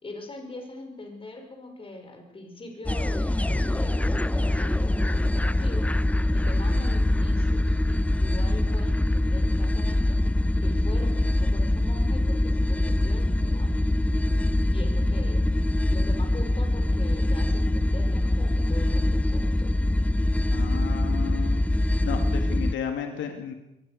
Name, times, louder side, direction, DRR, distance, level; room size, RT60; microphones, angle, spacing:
voice 1, 0.0-5.9 6.3-10.2 10.6-13.9 14.7-15.5 15.9-19.7, left 2 dB, 25° left, 4 dB, 5.3 m, -42 dB
sound 1, 2.8-22.7, left 1 dB, 5° left, 0.6 m, -24 dB
voice 2, 20.5-21.6 22.0-23.5, left 7 dB, 75° left, 4 dB, 2.6 m, -33 dB
22.5 x 18.5 x 6.7 m, 0.91 s
cardioid pair, 90°, 20 cm